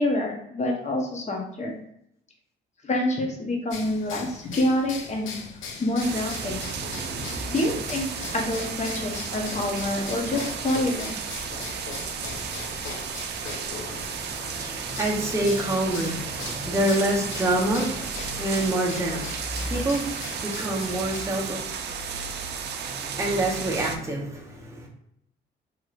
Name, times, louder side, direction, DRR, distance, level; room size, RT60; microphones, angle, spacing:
voice 1, 0.0-1.7 2.8-5.3 5.8-6.6 7.5-8.1 8.3-11.2, left 1 dB, 35° left, 1 dB, 0.8 m, -27 dB
sound 1, 3.7-21.4, left 4 dB, 80° left, 0.5 m, -39 dB
sound 2, 6.0-24.0, right 5 dB, 60° right, 0.4 m, -33 dB
voice 2, 14.1-21.6 22.9-24.9, right 1 dB, 15° right, -3 dB, 0.8 m, -27 dB
3.0 x 2.9 x 2.4 m, 0.75 s
cardioid pair, 90°, 20 cm